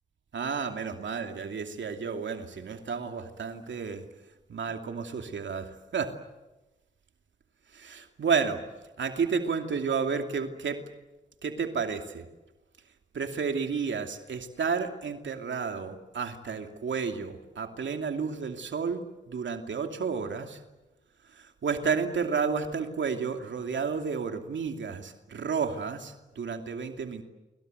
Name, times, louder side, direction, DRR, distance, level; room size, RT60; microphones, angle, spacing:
voice 1, 0.3-4.0 4.5-6.1 7.7-8.6 9.0-10.8 11.4-12.2 13.1-19.0 19.3-20.6 21.4-27.2, right 5 dB, 85° right, 6 dB, 2.6 m, -31 dB
28.5 x 24.5 x 8.0 m, 1.0 s
cardioid pair, 45°, 19 cm